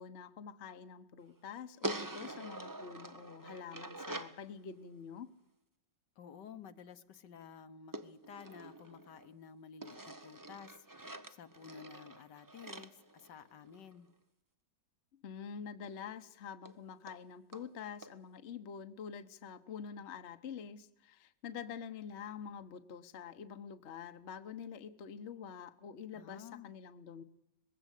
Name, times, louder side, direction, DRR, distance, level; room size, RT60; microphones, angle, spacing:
voice 1, 0.0-5.3 15.2-27.2, left 7 dB, 45° left, 9 dB, 1.1 m, -47 dB
sound 1, 1.8-4.4 7.9-9.3 9.8-13.9 15.8-15.9 16.2-16.3 16.7-16.8 17.1-17.2 17.5-17.7 18.0-18.1, right 1 dB, 20° right, 0.6 m, -45 dB
voice 2, 6.2-14.1 26.1-26.7, left 7 dB, 70° left, 9 dB, 1.6 m, -53 dB
21.0 x 16.0 x 8.2 m, 0.85 s
omnidirectional pair, 2.0 m